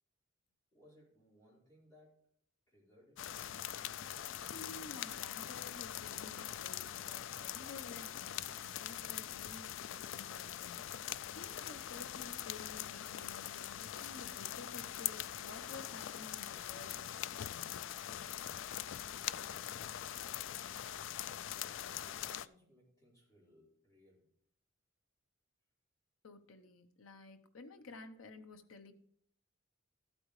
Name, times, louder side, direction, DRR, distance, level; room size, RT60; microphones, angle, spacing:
voice 1, 0.7-2.3 2.7-3.3 19.2-19.7 20.3-21.2 21.5-24.3, equal, 15° left, -6 dB, 4.5 m, -65 dB
sound 1, 3.2-22.5, left 11 dB, 65° left, 0.3 m, -43 dB
voice 2, 4.3-17.8 26.2-28.9, left 3 dB, 80° left, 7 dB, 0.9 m, -53 dB
13.5 x 8.6 x 3.2 m, 0.64 s
head